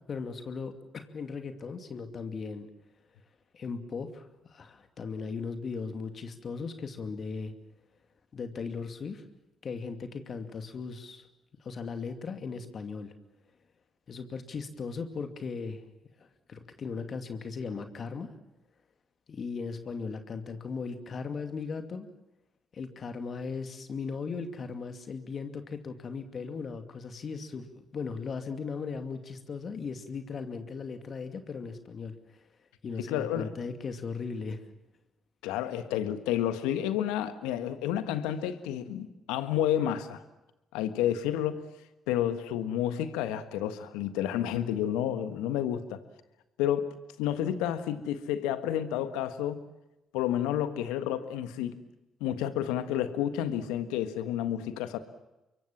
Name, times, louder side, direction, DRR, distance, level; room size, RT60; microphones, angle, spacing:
voice 1, 0.0-2.7 3.5-7.5 8.3-9.2 9.6-11.3 11.6-13.1 14.1-15.8 16.2-18.3 19.3-22.1 22.7-32.4 32.8-34.6, left 5 dB, 55° left, 7 dB, 2.5 m, -37 dB
voice 2, 33.1-33.5 35.4-40.2 40.7-41.6 42.1-46.0 46.6-49.6 50.1-51.8 52.2-55.0, left 11 dB, 80° left, 11 dB, 1.5 m, -30 dB
26.0 x 23.0 x 7.4 m, 0.97 s
hypercardioid pair, 50°, 0 cm